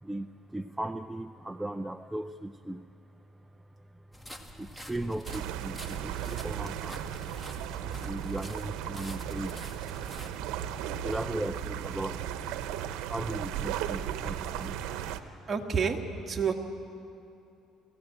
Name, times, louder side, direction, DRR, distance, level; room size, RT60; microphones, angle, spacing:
voice 1, 0.0-2.9 3.8-4.0 4.5-7.2 7.6-10.2 11.0-12.7 13.0-15.5, right 1 dB, 10° right, 7 dB, 0.5 m, -38 dB
sound 1, 4.1-10.3, equal, 10° left, 1.8 m, -47 dB
sound 2, 5.3-15.2, right 10 dB, 80° right, 0.9 m, -36 dB
voice 2, 15.5-16.0 16.3-16.5, right 6 dB, 30° right, 3 dB, 1.9 m, -28 dB
22.0 x 15.5 x 8.7 m, 2.7 s
cardioid pair, 95°, 0 cm